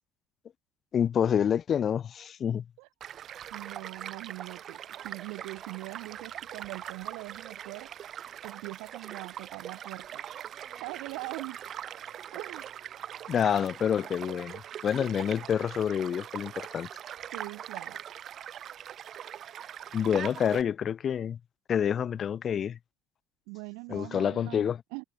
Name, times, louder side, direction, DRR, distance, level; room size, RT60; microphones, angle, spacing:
voice 1, 0.9-2.6 13.3-16.9 19.9-21.4 21.7-22.8 23.9-24.8, left 8 dB, 30° left, 2.3 m, -28 dB
Child speech kid speaking / Stream / Car passing by, 3.0-20.6, right 10 dB, 40° right, 5.3 m, -42 dB
voice 2, 3.5-7.9 8.4-10.2 10.6-11.6 12.3-12.7 17.3-18.0 23.5-24.6 24.9-25.0, right 35 dB, 85° right, 7.7 m, -42 dB
cardioid pair, 155°, 0 cm